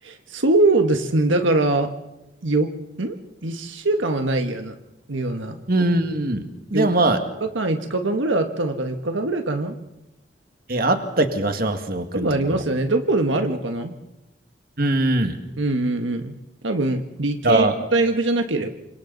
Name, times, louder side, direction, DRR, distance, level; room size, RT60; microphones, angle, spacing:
voice 1, 0.0-1.9 2.4-2.7 3.0-3.2 3.4-4.7 5.1-5.6 6.7-6.9 7.4-9.8 12.1-13.9 15.6-16.3 16.6-17.7 17.9-18.7, right 2 dB, 80° right, 6 dB, 1.5 m, -22 dB
voice 2, 5.7-6.4 6.7-7.2 10.7-12.5 14.8-15.4 17.4-17.7, right 2 dB, 50° right, 6 dB, 1.9 m, -21 dB
28.5 x 26.0 x 4.1 m, 0.91 s
head